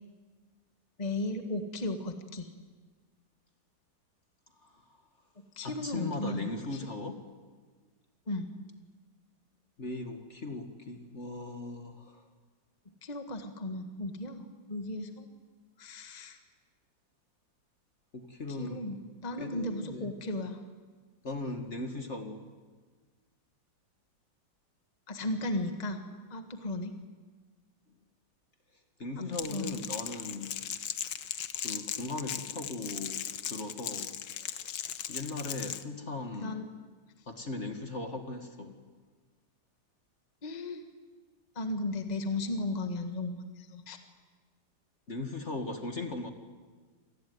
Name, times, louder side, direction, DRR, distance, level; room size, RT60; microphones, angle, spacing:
voice 1, 1.0-2.5 5.4-6.5 6.8-6.9 8.3-8.5 13.0-15.3 15.8-16.4 18.5-20.6 25.1-26.0 26.3-27.0 29.2-29.8 36.4-36.7 40.4-40.8 41.6-44.0, left 2 dB, 20° left, 6 dB, 1.7 m, -35 dB
voice 2, 5.6-7.2 9.8-12.3 18.1-19.0 19.4-20.1 21.2-22.4 29.0-30.6 31.6-34.1 34.4-34.6 35.1-36.6 37.3-38.7 45.1-46.3, left 2 dB, 40° left, 6 dB, 1.9 m, -38 dB
Crackle, 29.3-35.8, left 9 dB, 75° left, 1.7 m, -38 dB
27.0 x 19.5 x 9.5 m, 1.4 s
omnidirectional pair, 2.0 m